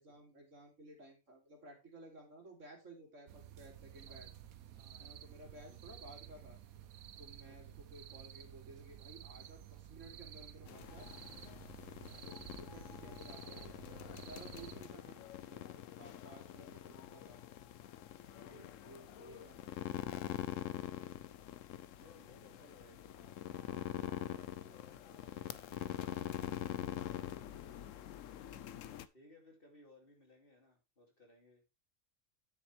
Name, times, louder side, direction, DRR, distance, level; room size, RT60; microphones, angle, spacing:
voice 1, 0.0-4.3 5.0-6.6 7.2-11.1 12.2-17.4 18.3-20.0 26.2-27.5, right 1 dB, 60° right, 1 dB, 3.2 m, -56 dB
sound 1, 3.3-14.9, right 11 dB, 90° right, 1.2 m, -53 dB
voice 2, 4.7-5.2 5.7-6.0 7.4-7.8 11.3-12.4 13.0-13.2 16.3-16.6 18.3-19.5 22.0-25.7 29.1-31.6, left 2 dB, 40° left, 1 dB, 2.7 m, -64 dB
sound 2, 10.7-29.1, left 11 dB, 70° left, 1.0 m, -45 dB
9.5 x 7.2 x 3.3 m, 0.25 s
omnidirectional pair, 1.4 m